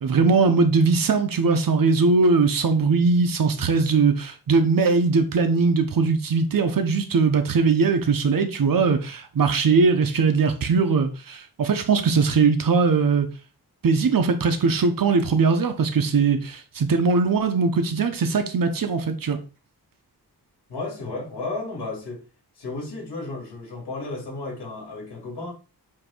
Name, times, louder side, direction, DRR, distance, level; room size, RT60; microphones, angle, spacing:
voice 1, 0.0-13.3 13.8-19.4, right 4 dB, 55° right, 1.0 m, -20 dB
voice 2, 20.7-22.2 22.6-25.5, left 3 dB, 75° left, 3.9 m, -33 dB
7.6 x 3.0 x 4.5 m
wide cardioid pair, 175°, 39 cm